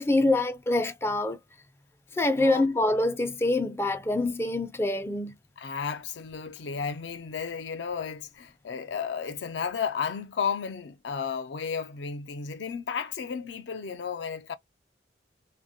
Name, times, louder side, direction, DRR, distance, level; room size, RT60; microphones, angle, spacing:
voice 1, 0.0-1.4 2.2-5.3, left 2 dB, 15° left, 0.4 m, -25 dB
voice 2, 2.4-2.7 5.6-14.5, left 6 dB, 75° left, 0.4 m, -33 dB
3.3 x 2.1 x 2.6 m
head